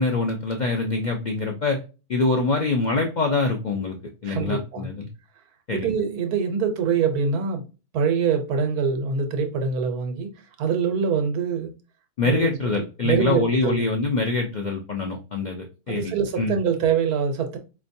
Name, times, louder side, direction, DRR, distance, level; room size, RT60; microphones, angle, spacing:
voice 1, 0.0-1.8 2.1-4.0 4.2-5.1 5.7-5.9 12.2-16.5, left 3 dB, 75° left, 0.4 m, -24 dB
voice 2, 4.2-4.9 5.7-7.6 7.9-10.3 10.6-11.7 12.2-13.8 15.9-17.6, right 6 dB, 80° right, 1.3 m, -24 dB
4.5 x 3.0 x 2.6 m
omnidirectional pair, 1.6 m